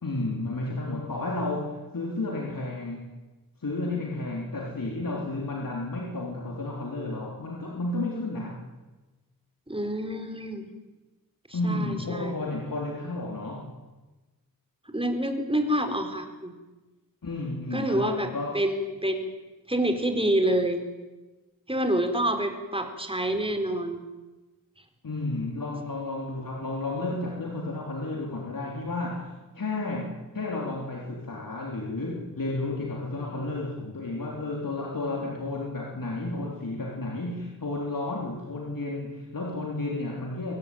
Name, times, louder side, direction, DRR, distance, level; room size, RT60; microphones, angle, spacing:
voice 1, 0.0-3.1 3.6-8.6 11.5-13.7 17.2-18.6 25.0-40.6, left 2 dB, 65° left, -1 dB, 3.8 m, -32 dB
voice 2, 9.7-10.7 11.5-12.3 14.9-16.5 17.7-19.3 19.7-20.8 21.7-24.0, right 1 dB, 15° right, 5 dB, 4.4 m, -27 dB
24.0 x 18.5 x 9.4 m, 1.2 s
wide cardioid pair, 60°, 36 cm